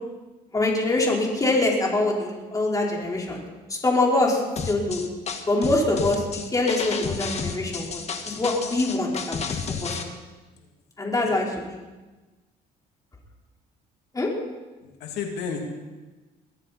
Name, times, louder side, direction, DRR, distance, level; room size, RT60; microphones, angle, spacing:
voice 1, 0.5-3.4 3.7-5.0 5.5-10.1 11.0-11.8 14.1-14.3, left 2 dB, 20° left, -2 dB, 4.1 m, -24 dB
sound 1, 4.6-10.0, left 5 dB, 40° left, 1.8 m, -31 dB
voice 2, 11.1-11.4 14.8-15.6, left 6 dB, 85° left, 2 dB, 2.6 m, -34 dB
22.0 x 14.5 x 4.2 m, 1.2 s
cardioid pair, 110°, 17 cm